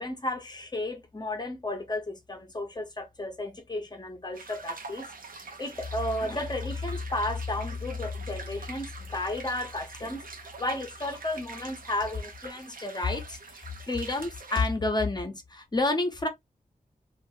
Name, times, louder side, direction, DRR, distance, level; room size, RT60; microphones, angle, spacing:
voice 1, 0.0-5.1 5.3-16.3, left 2 dB, 30° left, 0.9 m, -32 dB
sound 1, 4.3-14.7, right 4 dB, 75° right, 0.8 m, -45 dB
2.9 x 2.5 x 2.7 m
wide cardioid pair, 70°, 15 cm